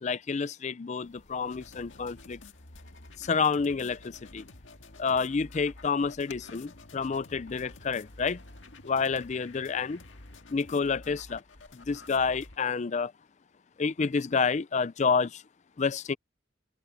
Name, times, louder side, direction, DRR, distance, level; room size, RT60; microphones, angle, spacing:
voice 1, 0.0-2.4 3.2-4.4 5.0-8.4 8.8-10.0 10.5-11.4 11.7-13.1 13.8-15.4 15.8-16.2, left 5 dB, 40° left, 0.4 m, -29 dB
sound 1, 1.0-10.4, left 3 dB, 70° left, 2.1 m, -57 dB
sound 2, 1.5-12.6, left 2 dB, 90° left, 1.9 m, -51 dB
head